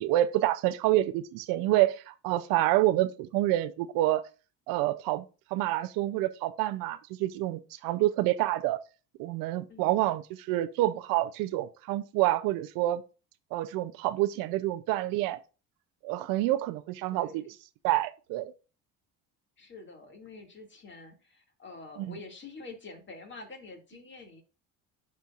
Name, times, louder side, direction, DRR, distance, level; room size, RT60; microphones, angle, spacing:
voice 1, 0.0-4.2 4.7-5.2 5.5-8.8 9.2-13.0 13.5-15.4 16.0-17.5 17.8-18.5 22.0-22.1, right 15 dB, 90° right, 0.6 m, -28 dB
voice 2, 17.1-17.5 19.6-24.4, left 3 dB, 35° left, 2.3 m, -47 dB
11.5 x 4.5 x 2.5 m
cardioid pair, 95°, 34 cm